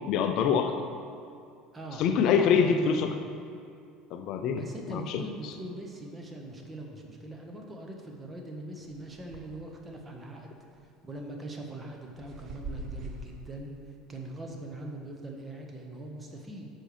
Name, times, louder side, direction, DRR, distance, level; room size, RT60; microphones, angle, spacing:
voice 1, 0.1-0.8 2.0-3.1 4.1-4.6 4.9-5.2, left 6 dB, 55° left, 6 dB, 0.5 m, -25 dB
voice 2, 1.7-3.1 4.5-10.6 11.0-13.7 14.1-16.7, right 1 dB, 20° right, 1 dB, 1.3 m, -41 dB
sound 1, 8.9-9.6 10.0-10.1 10.8-11.1 11.7-13.3, right 2 dB, 45° right, 0.9 m, -41 dB
9.8 x 6.3 x 3.3 m, 2.4 s
hypercardioid pair, 65°, 0 cm